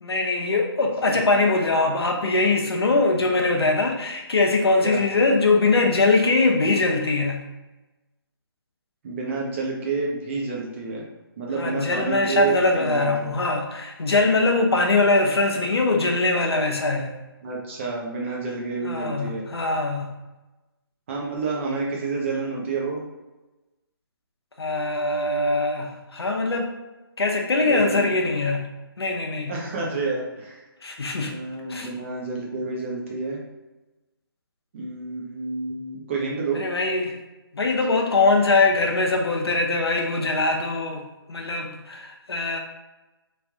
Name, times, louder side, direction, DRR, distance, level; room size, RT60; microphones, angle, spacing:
voice 1, 0.0-7.4 11.6-17.1 18.8-20.1 24.6-26.7 27.2-28.6 29.0-29.5 30.8-31.3 31.7-31.9 36.5-37.2 37.5-42.6, left 3 dB, 85° left, 2 dB, 0.8 m, -22 dB
voice 2, 9.0-11.1 11.4-13.3 17.4-19.5 21.1-23.0 27.6-28.1 29.5-30.6 31.2-33.4 34.7-36.7, right 4 dB, 30° right, -3 dB, 0.8 m, -29 dB
3.2 x 2.6 x 3.5 m, 1.1 s
hypercardioid pair, 160°, 13 cm